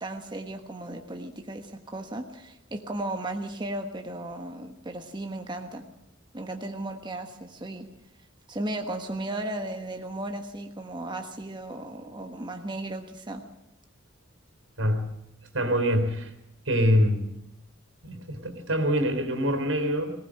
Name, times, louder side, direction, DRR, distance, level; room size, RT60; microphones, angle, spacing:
voice 1, 0.0-5.8 6.3-7.9 8.5-13.4, right 1 dB, 25° right, 4 dB, 1.3 m, -35 dB
voice 2, 14.8-15.1 15.5-16.3 16.7-17.3 18.0-20.1, equal, 85° right, 7 dB, 3.7 m, -25 dB
20.5 x 18.5 x 7.6 m, 0.82 s
head